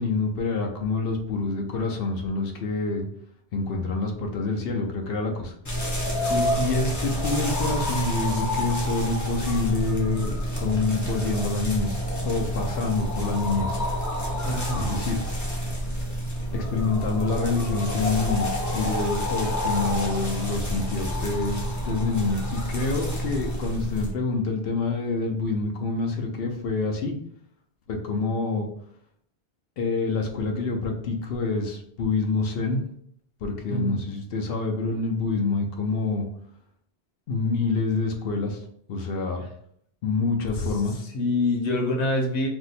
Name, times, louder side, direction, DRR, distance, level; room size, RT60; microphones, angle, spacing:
voice 1, 0.0-3.1 3.5-5.6 6.6-13.8 14.8-15.2 16.5-27.2 27.9-28.7 29.8-32.8 33.4-36.3 37.3-38.6 38.9-39.4 40.0-41.0, left 3 dB, 65° left, 3 dB, 0.7 m, -27 dB
sound 1, 5.6-24.1, equal, 25° left, 0.4 m, -28 dB
voice 2, 14.4-14.9 33.7-34.0 40.6-40.7 41.0-42.5, left 2 dB, 90° left, 1 dB, 1.1 m, -26 dB
2.6 x 2.1 x 4.0 m, 0.67 s
omnidirectional pair, 1.1 m